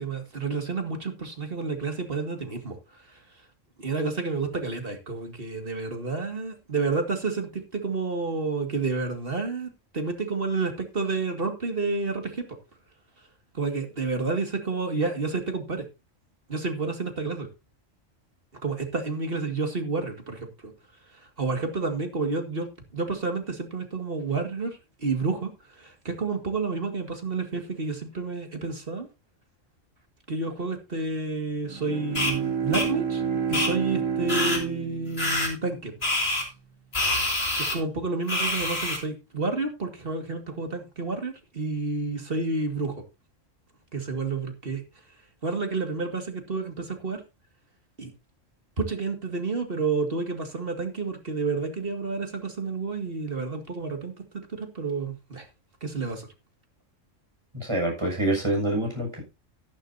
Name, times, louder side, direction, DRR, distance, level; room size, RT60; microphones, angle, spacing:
voice 1, 0.0-2.8 3.8-12.4 13.5-15.9 16.5-17.5 18.6-20.7 21.4-22.7 22.9-25.5 25.8-29.1 30.3-33.2 33.5-35.9 37.6-43.0 43.9-44.8 45.4-47.2 48.0-48.1 48.8-54.1 54.6-55.5 55.8-56.3, right 3 dB, 45° right, 5 dB, 2.3 m, -30 dB
Bowed string instrument, 31.6-36.2, right 7 dB, 80° right, 2.0 m, -30 dB
sound 1, 32.2-32.3 32.7-32.9 33.5-33.7 34.3-34.6 35.2-35.5 36.0-36.4 36.9-37.8 38.3-39.0, left 1 dB, 50° left, 4.1 m, -26 dB
voice 2, 57.5-59.2, right 1 dB, 20° right, 0 dB, 6.9 m, -26 dB
13.0 x 11.5 x 2.8 m, 0.26 s
omnidirectional pair, 1.3 m